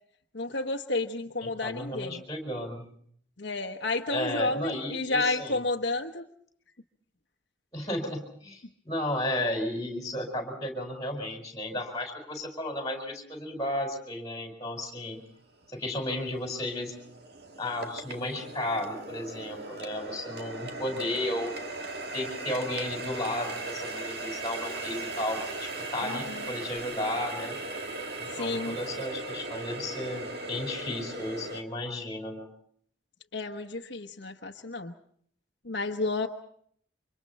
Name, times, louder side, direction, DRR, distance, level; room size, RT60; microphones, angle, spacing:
voice 1, 0.3-2.2 3.4-6.3 26.0-26.4 28.3-28.8 33.3-34.9 35.6-36.3, left 2 dB, 70° left, 4 dB, 1.2 m, -31 dB
voice 2, 1.4-2.9 4.1-5.6 7.7-15.2 15.7-16.9 17.6-21.5 22.1-27.6 28.2-32.5, left 1 dB, 20° left, 4 dB, 4.9 m, -33 dB
Water tap faucet, 15.1-15.2 15.8-31.6, right 2 dB, 55° right, 2.0 m, -38 dB
29.0 x 25.5 x 4.2 m, 0.62 s
head